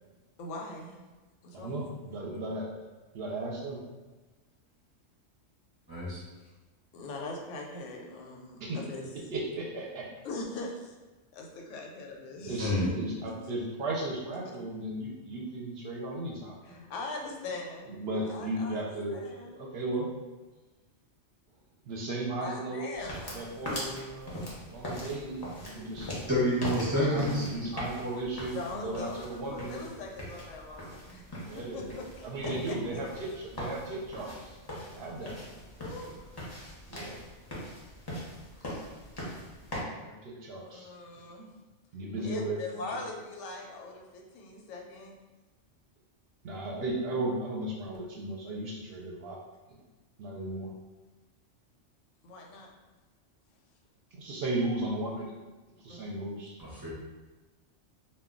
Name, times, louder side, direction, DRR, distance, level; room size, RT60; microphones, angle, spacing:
voice 1, 0.4-1.0 1.4-2.2 6.9-9.0 10.2-10.9 11.3-12.7 13.3-13.4 16.6-19.6 22.4-23.5 28.5-31.2 31.5-33.0 35.8-36.3 40.6-41.5 42.2-45.1 52.2-52.7 55.9-56.3, left 3 dB, 90° left, 0 dB, 0.9 m, -41 dB
voice 2, 1.5-2.7 3.1-3.8 8.6-8.8 9.3-10.0 12.4-16.9 17.9-20.1 21.9-24.4 24.7-26.2 27.1-29.8 31.4-31.9 32.2-34.6 34.8-35.3 36.9-37.1 40.0-40.9 41.9-42.8 46.4-49.4 49.7-49.8 50.2-50.7 54.1-55.3 55.8-56.6, right 2 dB, 65° right, -2 dB, 0.7 m, -35 dB
voice 3, 5.9-6.2 12.6-12.9 26.3-27.5 56.6-56.9, equal, 25° right, -9 dB, 0.5 m, -28 dB
sound 1, 22.9-39.8, left 1 dB, 30° left, 0.5 m, -41 dB
2.2 x 2.2 x 3.6 m, 1.2 s
omnidirectional pair, 1.2 m